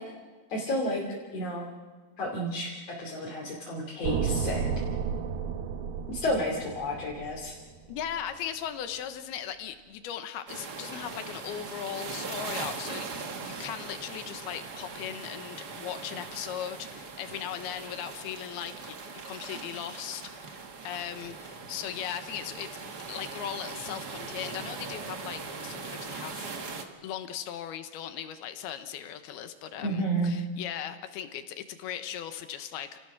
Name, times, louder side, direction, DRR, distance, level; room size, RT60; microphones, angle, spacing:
voice 1, 0.5-1.0 1.3-1.6 2.2-2.7 3.0-4.8 6.1-7.5 29.8-30.3, equal, 45° left, -3 dB, 3.6 m, -31 dB
sound 1, 4.0-8.2, right 7 dB, 75° right, 2.8 m, -32 dB
voice 2, 7.9-22.7 23.1-26.6 27.0-33.0, left 10 dB, 85° left, 9 dB, 3.2 m, -38 dB
sound 2, 10.5-26.8, right 4 dB, 55° right, 1.0 m, -40 dB
30.0 x 18.0 x 6.2 m, 1.3 s
omnidirectional pair, 4.4 m